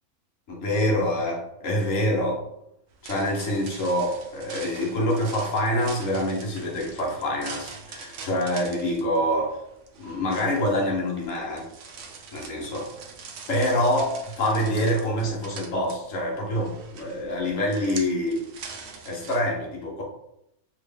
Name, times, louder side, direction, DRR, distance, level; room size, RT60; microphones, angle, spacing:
voice 1, 0.5-2.4 3.0-9.6 10.0-11.7 12.3-12.8 13.5-18.4 19.1-20.0, equal, 65° left, -2 dB, 1.2 m, -26 dB
sound 1, 2.9-19.4, right 5 dB, 65° right, 0.6 m, -43 dB
2.9 x 2.8 x 3.4 m, 0.80 s
omnidirectional pair, 1.5 m